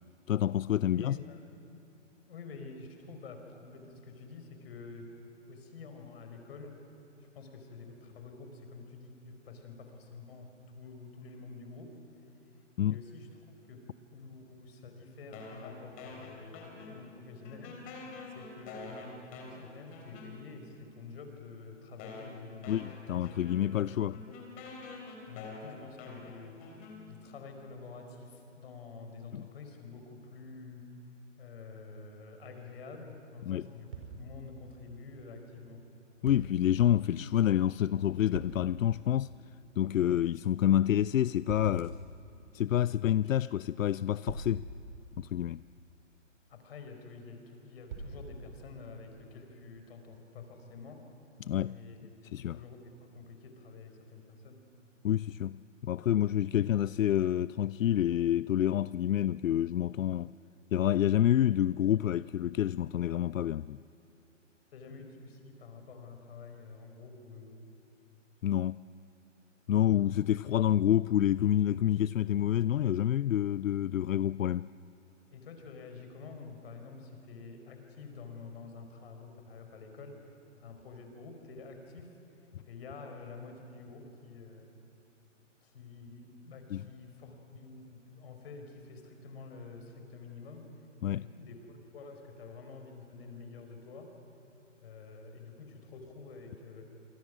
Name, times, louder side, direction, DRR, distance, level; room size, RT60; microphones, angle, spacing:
voice 1, 0.3-1.2 12.8-13.0 22.7-24.2 29.3-29.4 33.4-33.7 36.2-39.3 39.8-42.0 42.5-44.7 45.2-45.6 51.4-51.8 52.3-52.6 55.0-60.3 60.7-63.8 68.4-68.8 69.7-74.7 86.7-86.8 91.0-91.3, left 11 dB, 85° left, 0.5 m, -28 dB
voice 2, 0.8-1.4 2.3-5.1 5.5-6.7 7.3-10.5 10.7-11.9 12.9-13.3 13.7-13.8 14.1-17.7 18.2-23.3 23.6-24.4 25.3-26.5 27.1-30.8 31.4-35.8 46.5-51.0 51.7-54.6 64.7-67.6 75.3-80.3 80.6-82.1 82.7-84.7 85.6-90.6 91.1-94.1 94.8-96.9, left 4 dB, 50° left, 4.5 m, -48 dB
sound 1, 15.3-17.2 17.4-20.7 21.4-21.5 22.0-27.4, left 3 dB, 20° left, 3.5 m, -47 dB
sound 2, 33.9-34.7 36.3-36.8 38.3-38.9 41.5-42.1 44.3-45.7 47.9-48.7, right 3 dB, 45° right, 5.0 m, -44 dB
28.0 x 23.0 x 6.2 m
hypercardioid pair, 150°, 38 cm